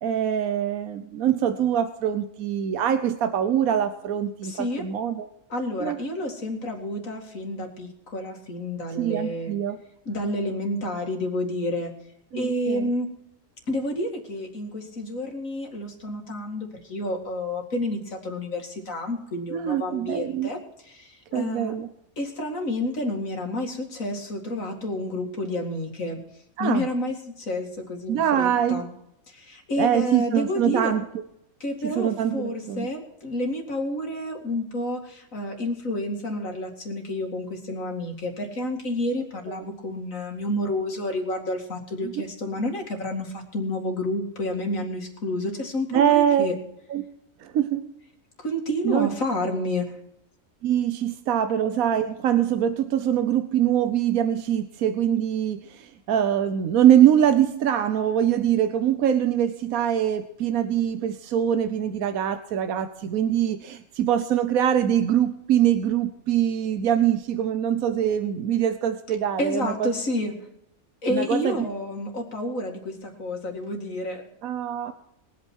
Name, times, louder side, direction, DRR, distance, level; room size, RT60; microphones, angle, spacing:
voice 1, 0.0-5.3 5.8-6.0 9.0-9.8 12.3-12.9 19.5-20.5 21.3-21.9 26.6-26.9 28.1-28.8 29.8-31.0 31.8-32.9 39.5-39.6 42.0-42.2 45.9-46.5 46.9-47.0 47.4-47.9 48.8-49.1 50.6-69.9 71.1-71.5 74.4-74.9, right 10 dB, 80° right, 9 dB, 1.3 m, -23 dB
voice 2, 4.4-4.9 5.5-9.6 10.1-12.0 12.3-13.2 13.7-21.8 22.2-26.2 26.6-28.9 29.3-30.9 31.6-46.5 48.4-50.0 69.4-70.5 71.0-74.3, left 1 dB, 65° left, 2 dB, 2.7 m, -30 dB
21.5 x 8.6 x 4.5 m, 0.79 s
omnidirectional pair, 1.5 m